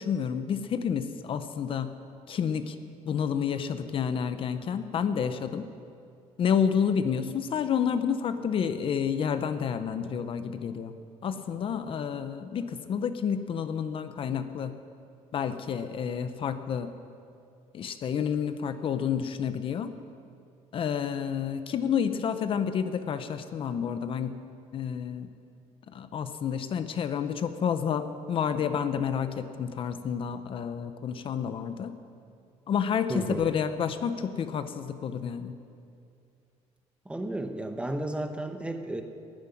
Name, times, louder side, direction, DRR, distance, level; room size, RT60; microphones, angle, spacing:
voice 1, 0.0-1.9 2.3-2.8 3.0-5.7 6.4-10.9 11.2-14.8 15.3-16.9 17.7-19.9 20.7-24.4 24.7-25.3 25.9-32.0 32.7-35.6, left 7 dB, 50° left, 10 dB, 0.8 m, -29 dB
voice 2, 33.1-33.4 37.1-39.0, right 1 dB, 10° right, 6 dB, 1.1 m, -33 dB
13.5 x 10.0 x 10.0 m, 2.4 s
cardioid pair, 135°, 12 cm